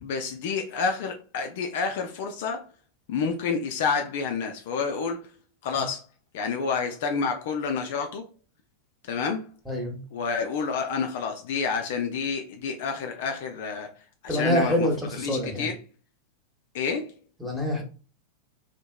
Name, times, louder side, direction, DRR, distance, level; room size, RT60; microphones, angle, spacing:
voice 1, 0.0-2.6 3.1-5.3 5.6-6.0 6.3-8.2 9.1-9.5 10.1-13.9 14.3-14.9 15.2-15.8 16.7-17.2, left 5 dB, 50° left, 0.4 m, -29 dB
voice 2, 9.6-10.0 14.3-15.7 17.4-17.8, equal, ahead, 1.1 m, -26 dB
2.8 x 2.8 x 2.2 m
figure-of-eight pair, 90°, 0 cm